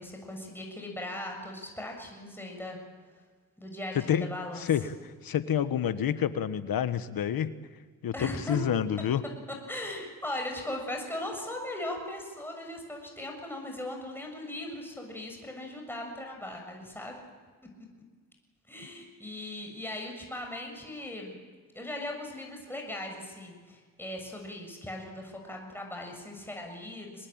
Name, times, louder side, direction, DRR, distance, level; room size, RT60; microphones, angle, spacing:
voice 1, 0.0-2.8 3.6-4.7 8.1-8.6 9.7-17.2 18.7-21.4 21.7-27.3, left 1 dB, 5° left, 1 dB, 7.0 m, -38 dB
voice 2, 3.9-4.3 4.6-7.5 8.0-9.2, left 9 dB, 80° left, 12 dB, 1.4 m, -28 dB
25.5 x 20.0 x 8.9 m, 1.5 s
cardioid pair, 70°, 35 cm